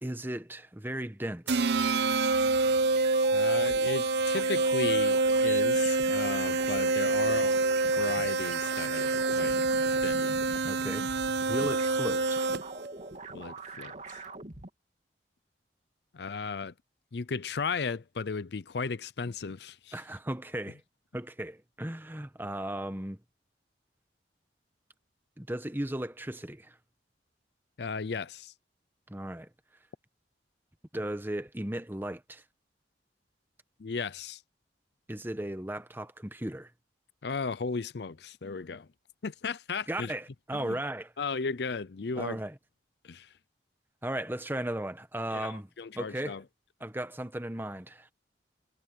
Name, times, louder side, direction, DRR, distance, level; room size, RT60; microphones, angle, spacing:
voice 1, 0.0-1.7 10.6-11.1 11.5-12.5 19.9-20.8 21.1-23.2 25.4-26.8 29.1-29.5 30.9-32.4 35.1-36.7 39.9-41.1 42.2-42.5 44.0-45.7 45.9-46.4 46.8-48.1, right 1 dB, 10° right, 1.2 m, -36 dB
sound 1, 1.4-14.7, right 4 dB, 40° right, 2.8 m, -44 dB
sound 2, 1.5-12.9, right 3 dB, 65° right, 0.6 m, -27 dB
sound 3, 2.3-12.3, left 2 dB, 85° left, 4.6 m, -58 dB
voice 2, 3.3-7.6 8.0-9.6 10.0-10.3 13.3-14.2 16.1-16.7 17.1-20.0 27.8-28.5 33.8-34.4 37.2-38.9 39.2-40.1 40.5-40.8 41.2-42.4 43.0-43.3 45.3-46.4, left 4 dB, 65° left, 0.6 m, -35 dB
head